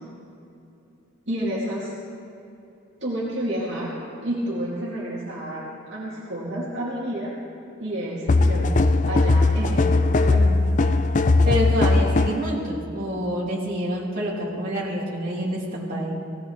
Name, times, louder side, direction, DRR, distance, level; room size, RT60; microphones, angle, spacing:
voice 1, 1.3-1.9 3.0-3.9 4.2-7.4 7.8-10.5, right 1 dB, 60° right, -7 dB, 2.4 m, -30 dB
sound 1, 8.3-12.5, left 2 dB, 35° left, 0.4 m, -19 dB
voice 2, 10.2-10.6 11.4-16.2, equal, 40° right, -6 dB, 3.3 m, -27 dB
18.0 x 18.0 x 3.3 m, 2.8 s
head